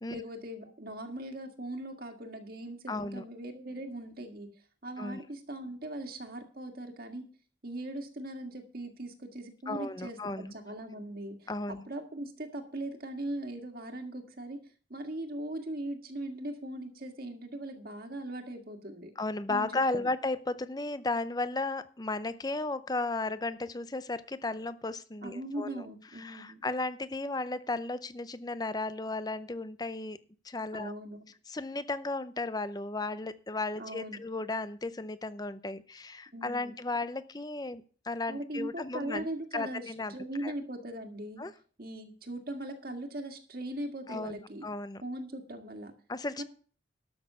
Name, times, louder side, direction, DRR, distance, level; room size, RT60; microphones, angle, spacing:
voice 1, 0.1-4.5 4.8-7.2 7.6-11.5 11.9-14.6 14.9-19.1 19.5-19.7 25.2-26.6 30.7-31.2 33.8-34.2 36.3-36.7 38.3-41.4 41.8-44.6 45.0-45.9 46.4-46.5, right 1 dB, 55° right, 4 dB, 1.8 m, -40 dB
voice 2, 2.9-3.2 5.0-5.2 9.7-10.5 11.5-11.9 19.2-25.8 26.1-30.2 30.4-30.9 31.5-39.3 39.5-40.1 40.4-40.5 41.4-41.5 44.1-45.0 46.1-46.4, left 2 dB, 20° left, 13 dB, 0.6 m, -34 dB
12.5 x 6.4 x 6.7 m, 0.42 s
head